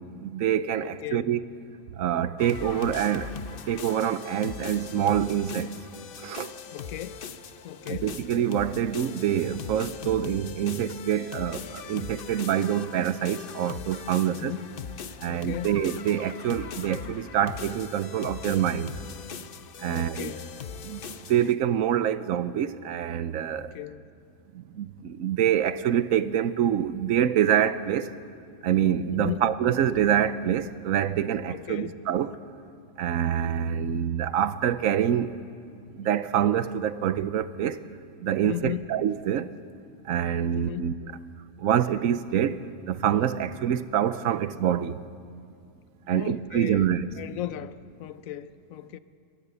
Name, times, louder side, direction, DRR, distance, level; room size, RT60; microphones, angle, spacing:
voice 1, 0.2-1.4 2.0-5.7 6.2-6.5 7.9-14.5 15.2-18.9 19.8-20.3 20.8-21.0 21.3-23.7 24.5-28.1 28.6-32.3 33.0-35.3 36.0-37.8 38.2-39.5 40.0-40.9 41.6-42.6 42.9-45.0 46.1-47.1, right 10 dB, 85° right, 1.1 m, -26 dB
voice 2, 0.8-1.3 6.7-7.2 7.6-8.2 14.2-14.7 15.3-15.8 19.9-20.5 23.6-24.1 29.1-29.4 31.5-32.0 38.4-38.9 40.5-40.8 46.1-49.0, left 13 dB, 85° left, 1.1 m, -36 dB
sound 1, 2.4-21.5, left 7 dB, 50° left, 0.8 m, -40 dB
24.0 x 19.0 x 6.9 m
omnidirectional pair, 1.4 m